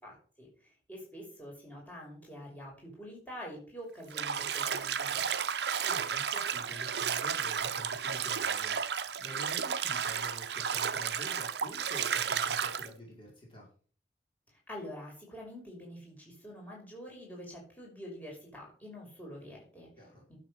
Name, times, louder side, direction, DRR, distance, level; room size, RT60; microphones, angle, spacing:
voice 1, 0.0-5.2 14.5-19.9 20.3-20.4, equal, 10° left, -2 dB, 5.9 m, -46 dB
Bathtub (filling or washing), 4.1-12.9, right 7 dB, 70° right, 0.8 m, -33 dB
voice 2, 5.8-13.7 20.0-20.2, equal, 30° left, -3 dB, 5.2 m, -48 dB
12.0 x 7.6 x 7.7 m, 0.43 s
head